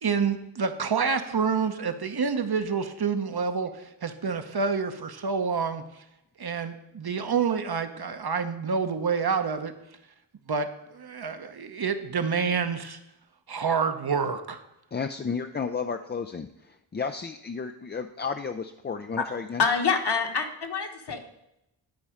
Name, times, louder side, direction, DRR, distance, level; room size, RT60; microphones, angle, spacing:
voice 1, 0.0-5.8 6.4-9.7 10.5-13.0 13.5-14.6, right 5 dB, 50° right, 8 dB, 0.8 m, -28 dB
voice 2, 14.9-19.6, left 5 dB, 25° left, 7 dB, 0.3 m, -33 dB
voice 3, 19.6-21.2, left 5 dB, 50° left, 4 dB, 1.3 m, -26 dB
10.5 x 4.2 x 4.9 m, 0.85 s
cardioid pair, 45°, 50 cm